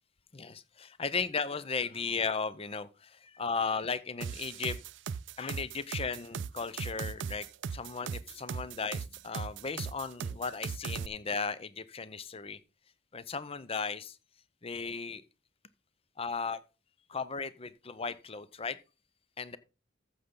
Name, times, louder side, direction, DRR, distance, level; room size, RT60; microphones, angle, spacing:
voice 1, 0.3-4.8 5.4-7.5 7.7-12.6 13.1-14.2 14.6-15.2 16.2-16.6 17.1-18.8 19.4-19.6, left 5 dB, 30° left, 0.6 m, -36 dB
sound 1, 4.2-11.1, right 6 dB, 65° right, 0.4 m, -37 dB
14.0 x 6.6 x 3.8 m
head